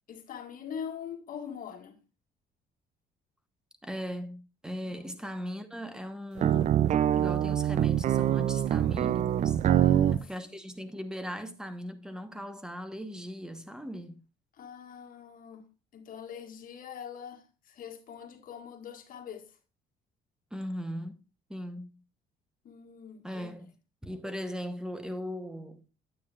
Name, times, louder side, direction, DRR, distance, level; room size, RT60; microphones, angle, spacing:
voice 1, 0.1-2.0 4.8-5.1 9.7-10.6 14.6-15.7 15.9-19.5 22.6-23.5, left 7 dB, 55° left, 1.7 m, -43 dB
voice 2, 3.8-9.6 10.1-14.2 20.5-21.2 21.5-22.0 23.2-23.7 24.0-25.9, equal, 5° right, 1.1 m, -39 dB
sound 1, 6.4-10.2, right 11 dB, 45° right, 0.4 m, -24 dB
9.3 x 8.7 x 2.4 m
cardioid pair, 110°, 17 cm